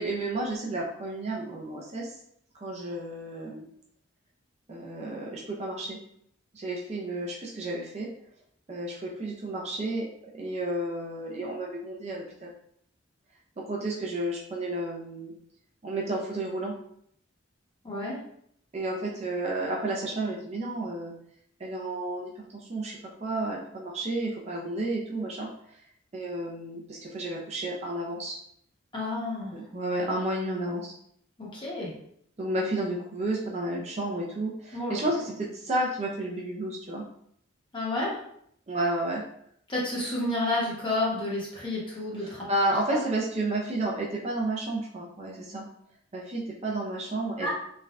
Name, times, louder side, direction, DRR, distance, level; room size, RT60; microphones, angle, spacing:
voice 1, 0.0-2.1 2.6-3.7 4.7-6.0 6.5-8.1 8.7-10.0 10.3-12.5 13.6-15.3 15.8-16.7 18.7-21.1 21.6-25.5 26.1-28.4 29.5-30.9 32.4-37.0 38.7-39.2 42.2-45.6 46.1-47.5, right 2 dB, 35° right, -3 dB, 0.4 m, -31 dB
voice 2, 17.8-18.2 28.9-29.5 31.4-31.9 34.7-35.0 37.7-38.2 39.7-42.4 42.9-43.0 47.4-47.5, left 2 dB, 25° left, -5 dB, 0.8 m, -30 dB
3.2 x 2.2 x 2.4 m, 0.69 s
head